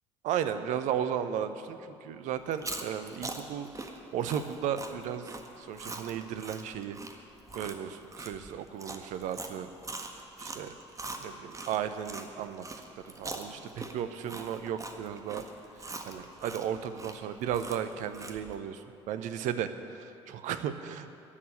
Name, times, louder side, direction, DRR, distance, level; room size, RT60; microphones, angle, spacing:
voice 1, 0.2-5.3 5.6-7.0 7.5-9.7 10.4-10.7 11.2-12.6 13.2-15.4 15.8-21.1, right 9 dB, 55° right, 11 dB, 0.9 m, -35 dB
Chewing mastication, 2.4-12.3 12.6-18.6, right 2 dB, 20° right, 1.5 m, -42 dB
16.0 x 7.0 x 10.0 m, 2.7 s
figure-of-eight pair, 55°, 16 cm